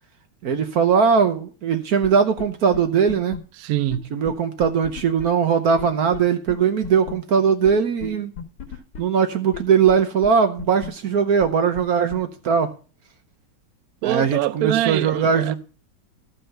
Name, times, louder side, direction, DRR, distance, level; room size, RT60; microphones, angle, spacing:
voice 1, 0.4-3.4 4.1-8.3 9.0-12.7 14.0-15.5, right 6 dB, 60° right, 1.1 m, -20 dB
sound 1, 2.0-2.1 2.4-2.5 2.7-2.8 3.1-3.4 3.9-4.0 4.3-4.4 4.6-5.3 5.8-5.9 6.1-6.2 6.5-6.6 6.8-7.1 7.7-7.8 8.0-8.1 8.4-9.0 9.5-9.6 9.9-10.0 10.2-10.3 10.6-10.9 11.4-11.5 11.8-11.9 12.1-12.2, left 7 dB, 90° left, 2.1 m, -33 dB
voice 2, 3.6-4.1 14.0-15.5, right 14 dB, 85° right, 0.8 m, -24 dB
13.0 x 5.7 x 5.3 m
omnidirectional pair, 2.2 m